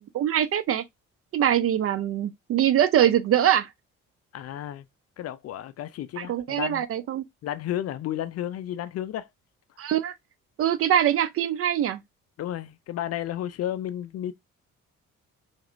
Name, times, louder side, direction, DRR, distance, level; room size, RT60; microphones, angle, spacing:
voice 1, 0.1-0.8 1.3-3.7 6.2-7.2 9.8-10.1 10.6-12.0, right 10 dB, 35° right, 0.4 m, -23 dB
voice 2, 4.3-4.9 5.2-6.8 7.4-9.3 12.4-14.3, left 11 dB, 40° left, 0.4 m, -32 dB
4.7 x 2.2 x 2.5 m
figure-of-eight pair, 45°, 40 cm